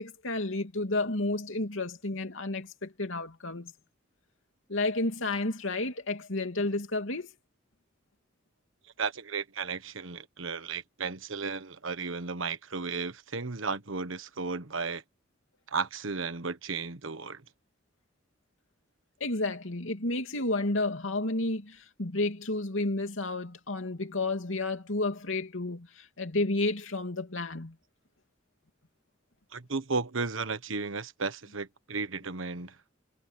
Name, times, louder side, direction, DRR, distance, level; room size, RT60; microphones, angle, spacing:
voice 1, 0.0-3.7 4.7-7.3 19.2-27.8, left 2 dB, 85° left, 2.8 m, -31 dB
voice 2, 9.0-15.0 15.7-17.4 29.5-32.7, right 4 dB, 90° right, 1.3 m, -34 dB
head